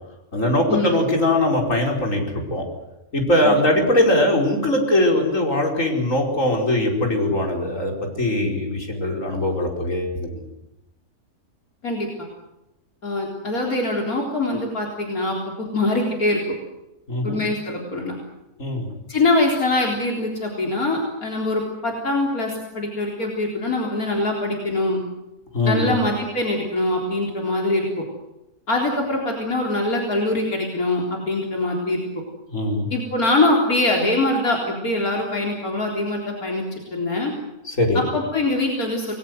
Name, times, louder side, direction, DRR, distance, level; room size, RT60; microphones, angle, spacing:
voice 1, 0.3-2.6 3.1-10.4 17.1-17.4 18.6-18.9 25.5-25.9 32.5-32.9 37.7-38.1, left 1 dB, 60° left, 1 dB, 5.5 m, -21 dB
voice 2, 13.0-16.4 17.2-18.2 19.1-25.0 25.6-28.0 28.7-32.2 32.9-37.3 38.1-39.1, left 2 dB, 75° left, 0 dB, 4.4 m, -23 dB
29.0 x 21.0 x 8.0 m, 0.93 s
omnidirectional pair, 1.5 m